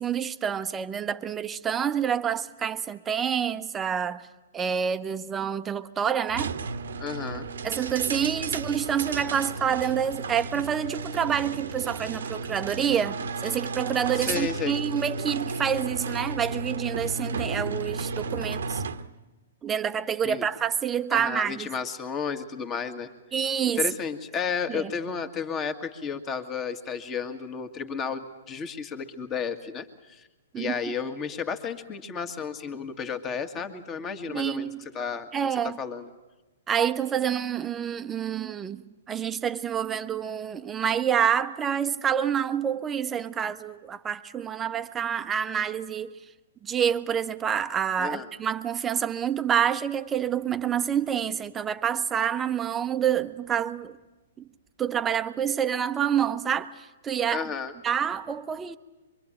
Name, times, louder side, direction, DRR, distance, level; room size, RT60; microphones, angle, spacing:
voice 1, 0.0-4.3 4.5-6.6 7.6-18.8 19.6-21.7 23.3-23.9 24.7-24.9 30.5-30.8 34.3-34.8 35.3-35.8 36.7-46.2 46.6-54.0 54.8-57.5 57.8-58.8, right 8 dB, 15° right, 0.9 m, -27 dB
sound 1, 6.3-19.1, right 4 dB, 60° right, 1.1 m, -33 dB
voice 2, 7.0-7.5 8.2-8.3 14.2-14.8 20.2-20.4 21.1-23.1 23.8-30.3 30.6-35.3 35.8-36.1 48.0-48.3 57.3-57.7, left 6 dB, 20° left, 2.0 m, -32 dB
24.0 x 24.0 x 8.9 m
figure-of-eight pair, 115°, 0 cm